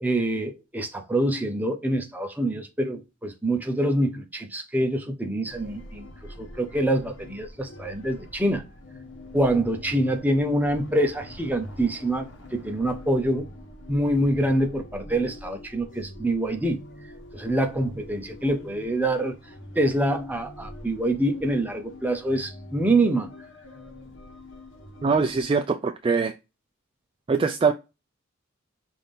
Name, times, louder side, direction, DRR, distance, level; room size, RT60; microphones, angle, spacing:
voice 1, 0.0-6.1 6.4-8.6 9.3-12.3 12.5-13.5 13.9-16.8 17.3-19.3 19.7-23.3, right 1 dB, 10° right, 0.7 m, -25 dB
sound 1, 5.5-25.4, left 1 dB, 65° left, 1.1 m, -44 dB
voice 2, 25.0-26.3 27.3-27.7, right 5 dB, 25° right, 0.3 m, -22 dB
5.6 x 2.6 x 3.4 m
head